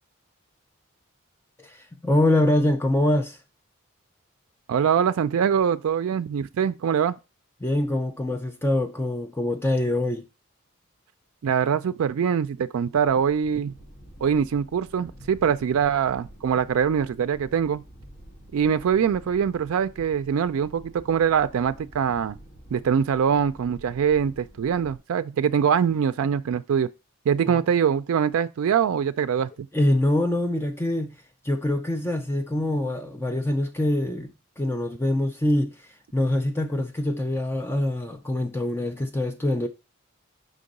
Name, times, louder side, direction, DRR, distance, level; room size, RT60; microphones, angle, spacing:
voice 1, 1.6-3.4 7.6-10.2 27.4-27.6 29.7-31.2 31.4-39.7, left 1 dB, 10° left, 0.4 m, -24 dB
voice 2, 4.7-7.2 11.4-13.7 14.2-17.8 18.5-22.4 22.7-26.9 27.3-29.7, right 7 dB, 85° right, 0.3 m, -23 dB
sound 1, 12.9-25.0, equal, 40° left, 1.1 m, -48 dB
5.2 x 3.8 x 5.2 m
head